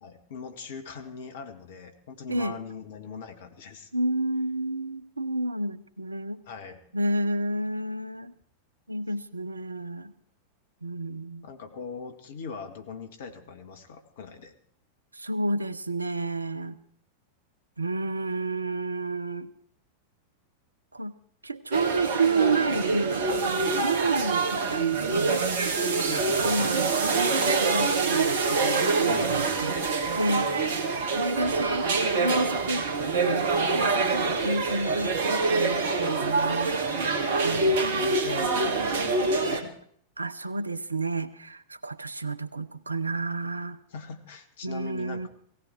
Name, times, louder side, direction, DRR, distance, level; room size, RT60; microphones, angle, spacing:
voice 1, 0.0-3.9 6.4-6.8 11.4-14.5 26.1-26.8 29.1-29.8 37.5-39.8 43.9-45.3, left 6 dB, 55° left, 6 dB, 2.0 m, -41 dB
voice 2, 2.3-2.6 3.9-6.4 6.9-8.3 8.9-10.1 10.8-11.4 15.1-16.8 17.8-19.5 20.9-21.1 21.4-25.4 26.4-26.9 27.3-29.8 30.2-30.5 31.2-31.9 32.2-32.9 33.2-33.5 33.7-36.8 37.4-38.0 40.2-43.8 44.6-45.3, right 2 dB, 80° right, 16 dB, 0.7 m, -30 dB
sound 1, 21.7-39.6, right 3 dB, 55° right, 1.7 m, -25 dB
17.5 x 16.0 x 4.6 m, 0.64 s
figure-of-eight pair, 90°, 0 cm